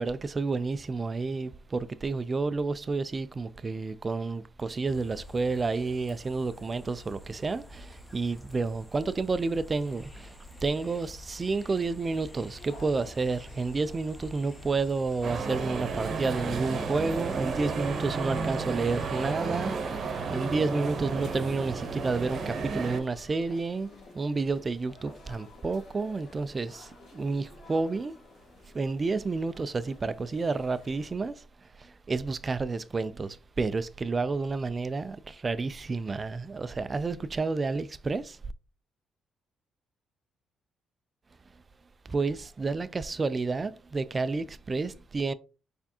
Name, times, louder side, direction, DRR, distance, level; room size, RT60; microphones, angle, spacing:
voice 1, 0.0-10.4 10.6-23.9 24.1-28.2 28.7-31.4 31.8-38.4 42.1-45.3, right 3 dB, 30° right, 0.3 m, -30 dB
sound 1, 4.8-19.3, left 1 dB, 10° left, 0.8 m, -48 dB
sound 2, 12.0-31.1, left 3 dB, 65° left, 1.7 m, -53 dB
sound 3, 15.2-23.0, right 4 dB, 55° right, 0.8 m, -32 dB
4.5 x 3.4 x 2.8 m
cardioid pair, 90°, 0 cm